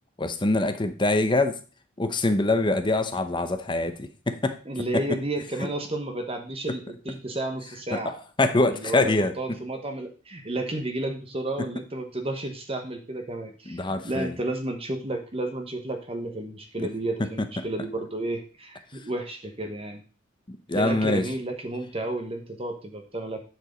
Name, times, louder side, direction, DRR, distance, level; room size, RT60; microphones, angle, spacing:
voice 1, 0.2-1.6 2.0-4.6 7.9-9.3 11.6-11.7 13.7-14.4 16.8-16.9 20.7-21.2, left 2 dB, 25° left, 9 dB, 0.8 m, -24 dB
voice 2, 4.7-8.2 8.7-20.0 20.7-23.4, right 1 dB, 30° right, 5 dB, 1.1 m, -32 dB
9.7 x 4.8 x 5.2 m, 0.37 s
head